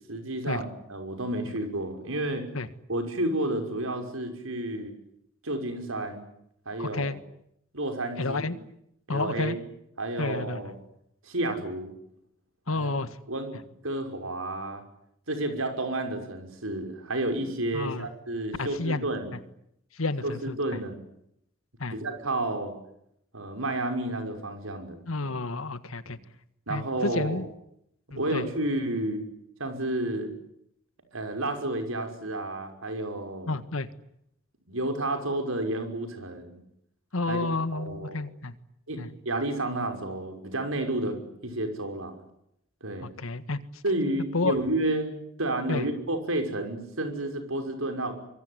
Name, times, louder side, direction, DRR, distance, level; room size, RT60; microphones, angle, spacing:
voice 1, 0.1-2.4 2.9-4.9 5.4-6.2 6.7-7.2 7.7-8.4 9.1-9.6 10.0-10.7 11.2-11.9 12.7-12.9 13.3-13.6 13.8-14.8 15.3-19.3 20.2-21.0 21.9-22.8 23.3-25.0 26.1-26.2 26.7-27.5 28.1-29.2 29.6-30.3 31.1-33.5 34.7-36.6 37.3-38.3 38.9-42.2 42.8-43.1 43.8-48.1, right 1 dB, 90° right, 5 dB, 5.8 m, -31 dB
voice 2, 6.8-7.2 8.2-8.6 9.1-9.6 10.2-10.7 12.7-13.1 17.7-18.1 18.6-19.1 20.0-20.5 21.8-21.9 25.1-26.2 26.7-27.5 28.1-28.4 33.5-33.9 37.1-38.5 39.0-39.1 43.0-43.6 44.3-44.5 45.7-45.9, left 3 dB, 85° left, 13 dB, 1.7 m, -30 dB
24.5 x 24.0 x 9.8 m, 0.76 s
head